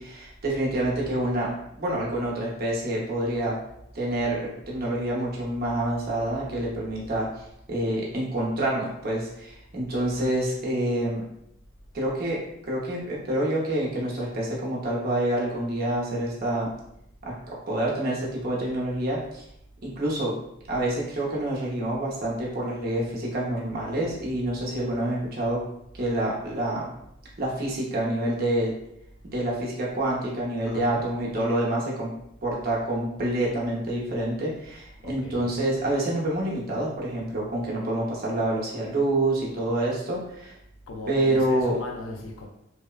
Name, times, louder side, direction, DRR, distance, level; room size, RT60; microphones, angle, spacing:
voice 1, 0.0-1.5 1.8-3.6 3.9-11.2 11.9-12.4 12.6-16.7 17.2-17.3 17.7-19.4 19.8-20.3 20.7-25.6 25.9-26.8 27.4-28.7 29.3-32.1 32.4-40.6 41.1-41.8, right 1 dB, 50° right, -4 dB, 0.7 m, -27 dB
voice 2, 30.6-31.1 35.0-35.6 40.9-42.5, left 2 dB, 90° left, 1 dB, 0.5 m, -38 dB
2.8 x 2.0 x 2.3 m, 0.79 s
head